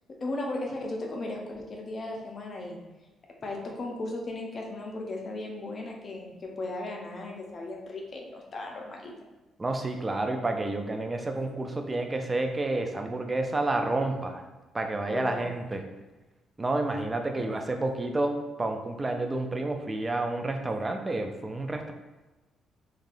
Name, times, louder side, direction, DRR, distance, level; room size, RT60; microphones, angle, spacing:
voice 1, 0.2-2.8 3.4-9.1 15.1-15.6 17.4-17.5, left 2 dB, 40° left, 0 dB, 0.6 m, -36 dB
voice 2, 9.6-14.4 14.7-15.8 16.6-21.9, right 2 dB, 20° right, 4 dB, 0.3 m, -30 dB
3.2 x 2.3 x 2.5 m, 1.1 s
cardioid pair, 90°, 0 cm